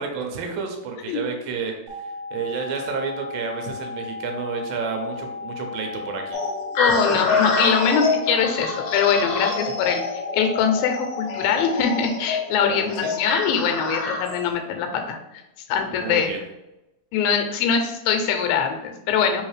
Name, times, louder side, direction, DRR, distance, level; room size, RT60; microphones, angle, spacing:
voice 1, 0.0-6.4 7.1-7.2 12.6-13.2 15.9-16.4, right 5 dB, 90° right, 3 dB, 2.4 m, -30 dB
sound 1, 1.9-11.9, left 4 dB, 60° right, 2.3 m, -35 dB
sound 2, 6.3-14.5, left 4 dB, 70° left, 1.7 m, -27 dB
voice 2, 6.8-10.0 10.3-15.2 15.7-16.3 17.1-19.4, left 6 dB, 90° left, 6 dB, 2.4 m, -22 dB
5.1 x 3.1 x 3.1 m, 0.92 s
omnidirectional pair, 4.1 m